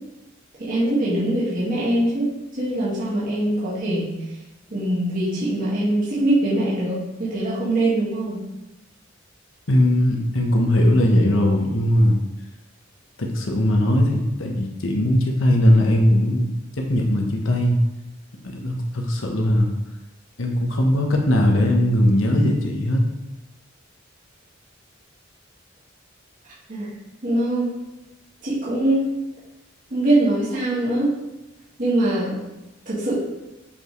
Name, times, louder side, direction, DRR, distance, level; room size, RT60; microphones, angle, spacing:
voice 1, 0.6-2.3 2.6-4.1 4.7-8.4 26.7-26.9 27.2-27.7 28.4-29.1 29.9-31.1 31.8-32.4 32.9-33.2, right 1 dB, 45° right, -9 dB, 2.0 m, -22 dB
voice 2, 9.7-12.2 13.2-16.5 16.8-17.8 18.5-19.7 20.4-23.0, left 1 dB, 90° left, 1 dB, 1.2 m, -19 dB
7.1 x 5.4 x 3.3 m, 0.99 s
head